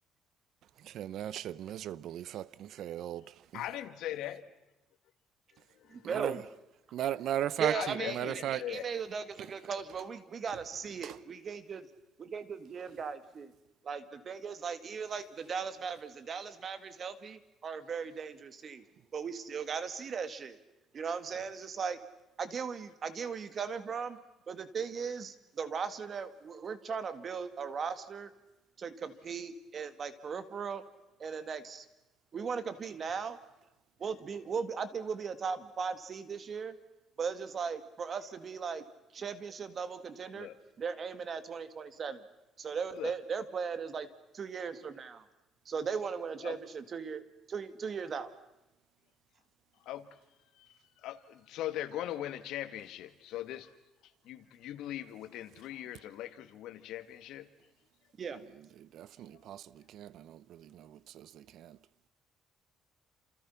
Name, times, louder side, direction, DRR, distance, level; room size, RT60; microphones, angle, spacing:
voice 1, 1.0-3.3 6.0-6.3 6.9-8.6 11.0-11.2 58.9-59.6 59.9-61.8, right 11 dB, 65° right, 0.8 m, -37 dB
voice 2, 3.5-4.4 5.8-6.1 7.7-8.9 40.3-40.5 42.9-43.1 46.4-46.6 49.8-50.1 50.6-53.7 54.2-57.5, left 13 dB, 80° left, 2.1 m, -40 dB
voice 3, 5.9-6.5 7.6-11.9 12.2-13.5 13.8-18.8 19.1-20.6 20.9-22.0 22.4-24.2 24.5-28.3 28.8-30.8 31.2-31.9 32.3-33.4 34.0-36.8 37.2-38.8 39.1-40.5 40.8-42.2 42.6-44.1 44.3-45.2 45.7-47.2 47.5-48.3 58.2-58.4, right 6 dB, 40° right, 2.2 m, -37 dB
29.5 x 28.5 x 5.9 m
cardioid pair, 125°, 0 cm